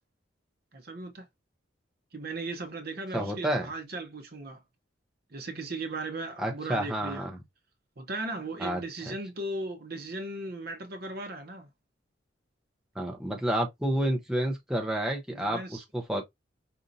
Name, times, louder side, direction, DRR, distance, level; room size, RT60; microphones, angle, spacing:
voice 1, 0.7-1.3 2.1-4.6 5.3-7.3 8.0-11.7 15.3-15.8, right 2 dB, 50° right, 0.8 m, -37 dB
voice 2, 3.1-3.7 6.4-7.4 8.6-9.1 13.0-16.2, right 1 dB, 5° right, 0.6 m, -30 dB
5.0 x 2.7 x 2.6 m
head